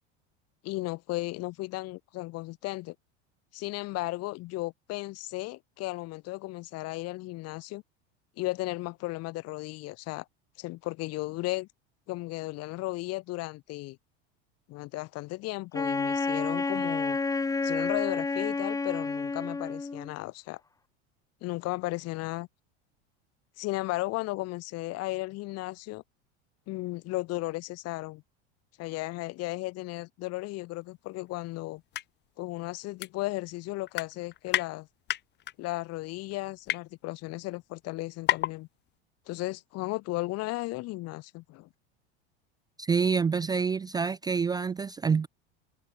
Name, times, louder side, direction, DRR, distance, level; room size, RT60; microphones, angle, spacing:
voice 1, 0.6-2.9 3.5-7.8 8.4-10.2 10.6-11.7 12.1-14.0 14.7-17.2 17.6-20.6 21.4-22.5 23.6-26.0 26.7-28.2 28.8-31.8 32.4-34.9 35.6-38.7 39.3-41.7, left 20 dB, 50° left, 2.7 m, -35 dB
Wind instrument woodwind instrument, 15.7-20.1, left 3 dB, 10° left, 1.7 m, -30 dB
sound 1, 31.8-32.0 32.4-32.5 33.0-33.6 33.9-34.7 35.1-35.5 36.2-36.8 37.5-37.6 37.8-37.9 38.3-38.6 38.9-39.0, left 13 dB, 30° left, 1.1 m, -30 dB
voice 2, 42.8-45.3, right 5 dB, 10° right, 0.5 m, -27 dB
supercardioid pair, 140°, 33 cm